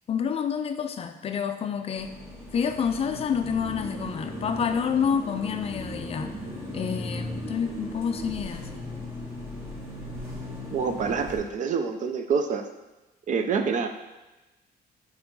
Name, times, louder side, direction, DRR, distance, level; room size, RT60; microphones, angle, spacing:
voice 1, 0.1-2.1 2.5-6.3 6.7-8.7, left 7 dB, 35° left, 7 dB, 0.4 m, -28 dB
sound 1, 2.0-11.4, left 1 dB, 15° right, 1.6 m, -37 dB
voice 2, 10.7-12.7 13.3-13.9, right 5 dB, 50° right, 7 dB, 0.5 m, -26 dB
7.1 x 5.5 x 3.8 m, 1.1 s
cardioid pair, 180°, 17 cm